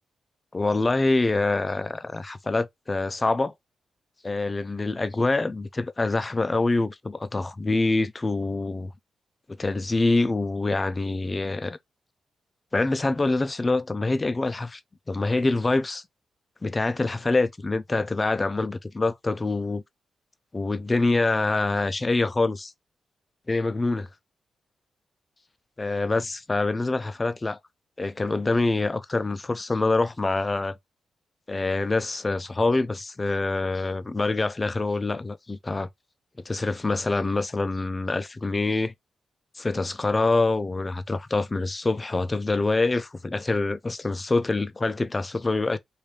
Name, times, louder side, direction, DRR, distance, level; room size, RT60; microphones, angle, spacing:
voice 1, 0.5-3.5 4.2-8.9 9.6-11.8 12.7-14.8 15.1-16.0 16.6-19.8 20.5-22.7 23.5-24.1 25.8-27.6 28.0-30.8 31.5-35.9 36.5-38.9 39.6-45.8, left 3 dB, 25° left, 0.4 m, -25 dB
3.2 x 2.6 x 3.1 m
cardioid pair, 90°, 0 cm